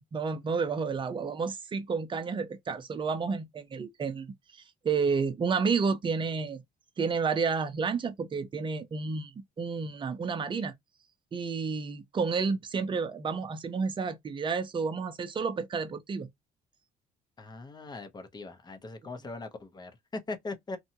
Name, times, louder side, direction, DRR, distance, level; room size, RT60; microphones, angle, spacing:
voice 1, 0.1-6.6 7.0-10.7 11.3-16.3, right 5 dB, 30° right, 0.6 m, -31 dB
voice 2, 17.4-20.8, left 3 dB, 25° left, 0.7 m, -40 dB
2.8 x 2.2 x 2.7 m
cardioid pair, 110°, 17 cm